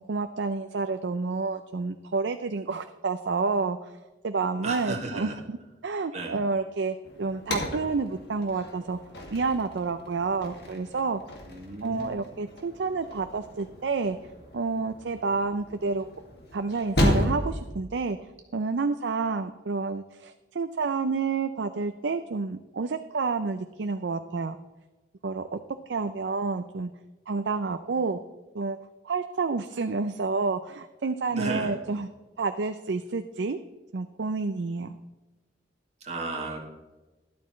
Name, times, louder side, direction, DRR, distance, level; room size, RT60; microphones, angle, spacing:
voice 1, 0.0-4.0 4.2-5.3 5.8-9.0 9.3-11.2 11.8-14.2 14.5-16.1 16.5-18.2 18.5-24.6 25.2-25.6 25.9-26.9 27.3-28.2 28.5-28.8 29.0-32.1 32.4-33.6 33.9-35.0, right 4 dB, 80° right, 8 dB, 0.5 m, -29 dB
voice 2, 4.6-5.4 6.1-6.4 11.4-12.3 31.3-31.7 36.0-36.6, right 2 dB, 40° right, 0 dB, 2.1 m, -34 dB
sound 1, 7.0-17.7, equal, 65° left, 2.0 m, -33 dB
12.5 x 12.0 x 3.2 m, 1.2 s
head